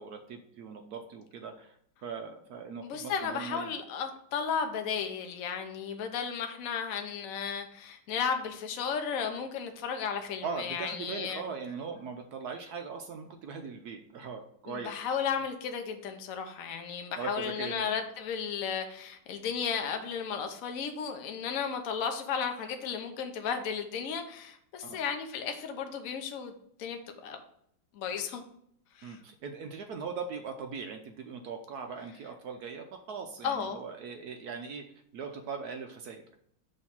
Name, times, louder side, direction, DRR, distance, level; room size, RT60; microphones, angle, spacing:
voice 1, 0.0-3.7 10.2-14.9 17.2-18.0 24.8-25.0 29.0-34.9 35.1-36.4, right 5 dB, 70° right, 5 dB, 0.9 m, -40 dB
voice 2, 2.8-11.4 14.7-26.5 26.8-27.4 27.9-28.4 29.0-29.2 33.4-33.8, left 6 dB, 60° left, 5 dB, 1.0 m, -34 dB
6.3 x 3.2 x 5.8 m, 0.69 s
omnidirectional pair, 2.2 m